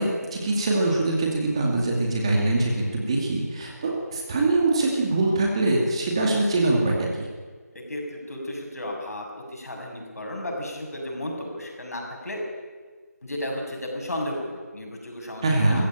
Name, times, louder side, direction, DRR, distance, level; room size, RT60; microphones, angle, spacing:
voice 1, 0.0-7.3 15.4-15.8, right 2 dB, 20° right, -1 dB, 2.4 m, -23 dB
voice 2, 7.7-12.4 13.2-15.9, left 1 dB, 65° left, 1 dB, 6.9 m, -34 dB
20.0 x 15.5 x 9.0 m, 1.5 s
figure-of-eight pair, 175°, 9 cm